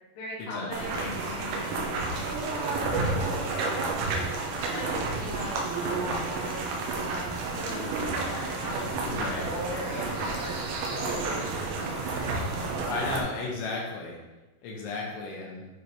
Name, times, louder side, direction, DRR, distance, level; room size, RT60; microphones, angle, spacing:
voice 1, 0.1-4.2 4.5-6.6 7.1-12.3, left 1 dB, 60° left, -5 dB, 3.1 m, -40 dB
sound 1, 0.7-13.2, right 3 dB, 80° right, 3.1 m, -31 dB
voice 2, 2.9-3.3 9.0-9.5 12.9-14.2 14.6-15.7, left 3 dB, 90° left, -2 dB, 3.4 m, -34 dB
9.3 x 3.3 x 4.1 m, 1.1 s
omnidirectional pair, 5.4 m